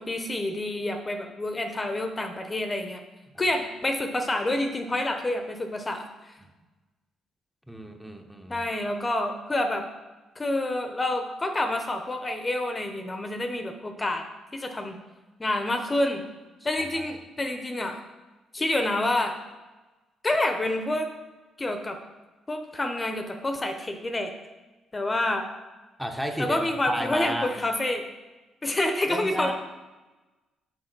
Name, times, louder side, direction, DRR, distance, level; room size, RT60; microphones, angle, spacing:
voice 1, 0.0-3.0 3.4-6.1 8.5-9.8 10.4-14.2 14.5-15.0 15.4-16.2 16.6-18.0 18.5-19.4 20.2-21.1 21.6-22.0 22.5-24.3 24.9-25.5 26.4-28.0 28.6-29.5, left 1 dB, 25° left, 5 dB, 0.8 m, -28 dB
voice 2, 7.7-8.6 16.9-17.0 26.0-27.5 29.1-29.5, equal, 5° right, 3 dB, 0.9 m, -32 dB
6.4 x 4.8 x 6.1 m, 1.2 s
cardioid pair, 90°, 0 cm